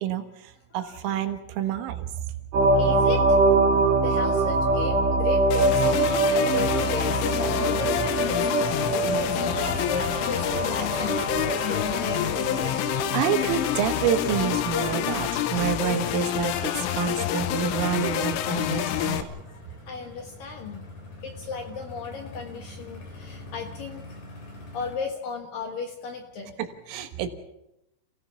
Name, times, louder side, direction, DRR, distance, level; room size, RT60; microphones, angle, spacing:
voice 1, 0.0-2.3 13.1-19.4 26.6-27.3, right 10 dB, 85° right, 7 dB, 4.0 m, -28 dB
sound 1, 2.5-15.1, right 3 dB, 50° right, 5.9 m, -24 dB
voice 2, 2.8-3.2 4.0-8.7 9.2-12.8 19.5-19.6 19.9-20.8 21.2-24.0 24.7-26.6, left 5 dB, 65° left, 4 dB, 2.4 m, -36 dB
sound 2, 5.5-19.2, left 11 dB, 85° left, 3.6 m, -27 dB
sound 3, 18.2-25.0, left 2 dB, 40° left, 4.9 m, -44 dB
29.5 x 17.0 x 5.8 m, 0.87 s
omnidirectional pair, 5.7 m